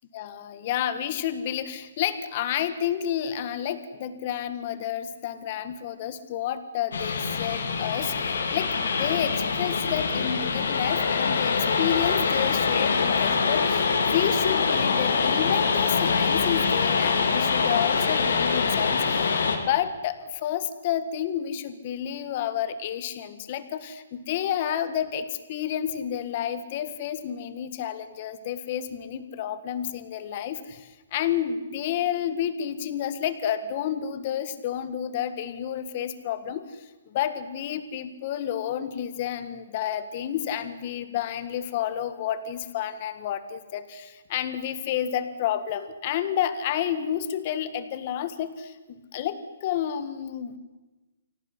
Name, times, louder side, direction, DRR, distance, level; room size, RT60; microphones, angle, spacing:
voice 1, 0.1-19.3 19.6-50.6, left 10 dB, 35° left, 12 dB, 1.7 m, -30 dB
sound 1, 6.9-19.6, left 5 dB, 80° left, 4.0 m, -24 dB
24.0 x 17.5 x 9.7 m, 1.2 s
hypercardioid pair, 165°, 0 cm